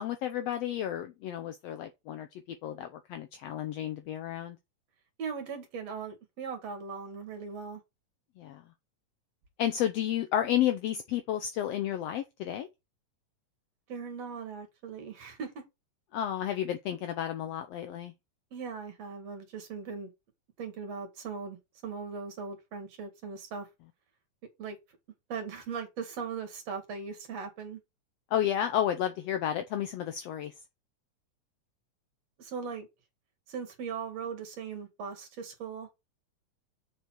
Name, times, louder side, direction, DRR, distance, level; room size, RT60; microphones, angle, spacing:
voice 1, 0.0-4.6 8.4-8.6 9.6-12.7 16.1-18.1 28.3-30.5, left 11 dB, 75° left, 1.5 m, -32 dB
voice 2, 5.2-7.8 13.9-15.6 18.5-20.1 20.6-21.6 21.8-23.7 24.6-24.8 25.3-27.8 32.4-32.9 33.5-35.9, right 5 dB, 60° right, 3.0 m, -39 dB
6.6 x 6.5 x 4.5 m
omnidirectional pair, 3.5 m